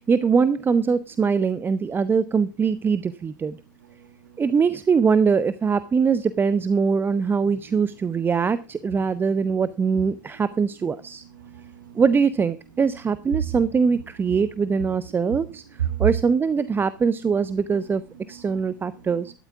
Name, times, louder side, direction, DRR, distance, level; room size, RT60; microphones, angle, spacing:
voice 1, 0.0-3.6 4.4-11.2 11.9-15.6 16.0-18.0 18.3-19.3, right 5 dB, 20° right, 15 dB, 0.7 m, -22 dB
voice 2, 3.8-4.4 11.3-12.0 13.4-13.5 15.7-16.1 18.3-19.1, right 10 dB, 75° right, 10 dB, 1.7 m, -31 dB
12.5 x 12.5 x 3.5 m, 0.30 s
figure-of-eight pair, 85°, 10 cm